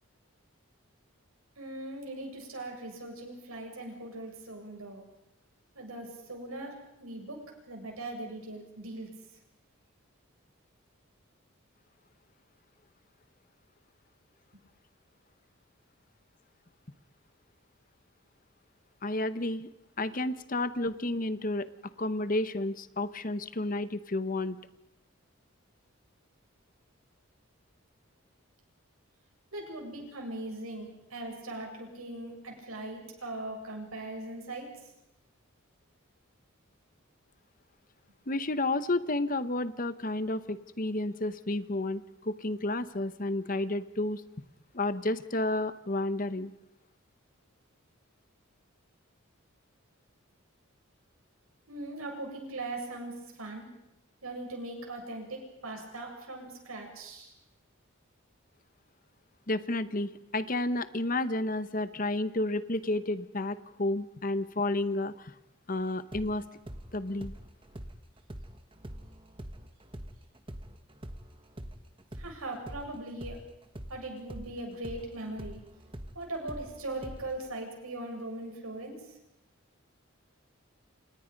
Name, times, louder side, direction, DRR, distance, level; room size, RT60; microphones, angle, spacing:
voice 1, 1.6-5.0 5.8-7.4 7.7-9.1 29.5-34.9 51.7-53.6 54.2-57.3 72.1-73.4 73.9-75.6 76.1-79.1, right 2 dB, 90° right, 2 dB, 7.6 m, -40 dB
voice 2, 19.0-19.7 20.0-21.7 22.0-24.6 38.3-44.2 44.7-46.5 59.5-65.3 65.7-66.4 66.9-67.3, left 2 dB, 40° left, 13 dB, 1.1 m, -31 dB
sound 1, 66.1-74.0 74.3-77.5, right 1 dB, 25° right, 1.5 m, -44 dB
30.0 x 27.0 x 5.3 m, 0.85 s
head